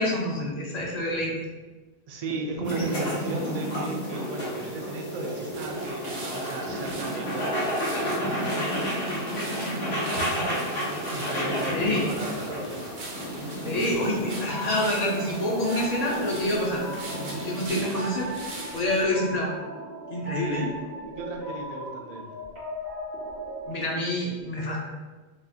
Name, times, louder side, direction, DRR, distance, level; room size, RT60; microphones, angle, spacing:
voice 1, 0.0-1.3 2.6-2.9 11.7-12.0 13.6-16.8 17.3-18.3 18.7-19.5 20.1-20.7 23.7-24.8, left 1 dB, 45° left, -3 dB, 0.7 m, -27 dB
voice 2, 2.1-7.6 7.9-8.5 10.1-12.7 17.6-18.0 20.3-20.8 21.1-22.3, right 2 dB, 50° right, 2 dB, 0.5 m, -36 dB
sound 1, 2.6-17.7, equal, 75° left, 1.4 m, -31 dB
sound 2, 5.5-19.0, right 2 dB, 70° right, 0.9 m, -42 dB
sound 3, 14.5-23.7, right 1 dB, 85° right, 2.0 m, -37 dB
4.8 x 2.4 x 2.7 m, 1.3 s
omnidirectional pair, 1.1 m